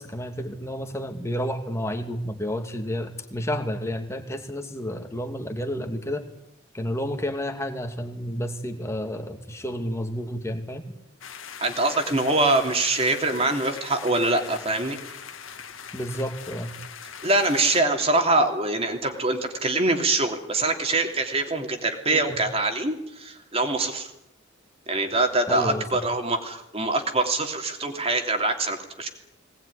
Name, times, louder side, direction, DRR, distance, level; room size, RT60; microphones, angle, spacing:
voice 1, 0.0-6.3 6.7-10.8 15.9-16.7 22.1-22.4 25.5-26.0, equal, 15° left, 5 dB, 2.5 m, -31 dB
sound 1, 11.2-17.8, left 7 dB, 85° left, 2.0 m, -41 dB
voice 2, 11.6-15.2 17.2-24.1 24.9-29.1, right 2 dB, 30° right, 4 dB, 3.2 m, -24 dB
21.5 x 19.5 x 10.0 m, 0.80 s
head